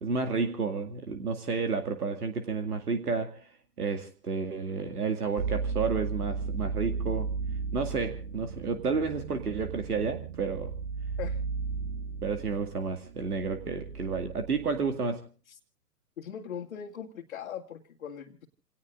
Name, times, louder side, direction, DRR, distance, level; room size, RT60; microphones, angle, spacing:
voice 1, 0.0-3.5 3.8-7.3 7.7-10.7 12.2-15.2, right 5 dB, 65° right, 6 dB, 2.3 m, -31 dB
sound 1, 5.4-14.9, right 5 dB, 50° right, 1.5 m, -35 dB
voice 2, 16.2-18.5, left 8 dB, 45° left, -1 dB, 2.2 m, -40 dB
29.0 x 18.5 x 2.5 m, 0.36 s
figure-of-eight pair, 125°, 48 cm